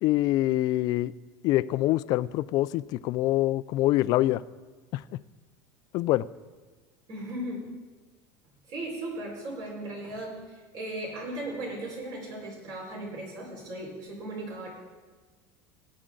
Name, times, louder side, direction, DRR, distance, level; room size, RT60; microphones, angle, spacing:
voice 1, 0.0-1.1 1.4-4.4 4.9-5.0 5.9-6.3, left 16 dB, 45° left, 17 dB, 0.3 m, -25 dB
voice 2, 7.1-7.6 8.7-14.7, right 1 dB, 50° right, -2 dB, 4.7 m, -37 dB
18.0 x 9.6 x 3.8 m, 1.4 s
cardioid pair, 160°, 9 cm